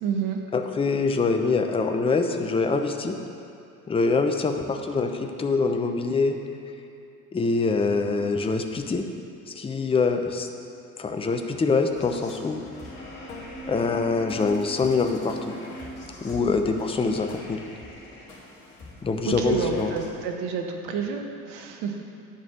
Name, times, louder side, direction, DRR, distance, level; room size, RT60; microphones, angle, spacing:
voice 1, 0.0-0.4 19.2-22.0, right 5 dB, 60° right, 3 dB, 1.3 m, -29 dB
voice 2, 0.5-3.1 3.9-6.4 7.3-9.0 9.6-10.5 11.0-12.6 13.7-15.6 16.2-17.6 19.0-19.9, left 4 dB, 10° left, 5 dB, 0.7 m, -24 dB
sound 1, 11.9-20.1, left 1 dB, 70° left, 2.3 m, -41 dB
9.3 x 5.3 x 7.1 m, 2.7 s
figure-of-eight pair, 60°, 44 cm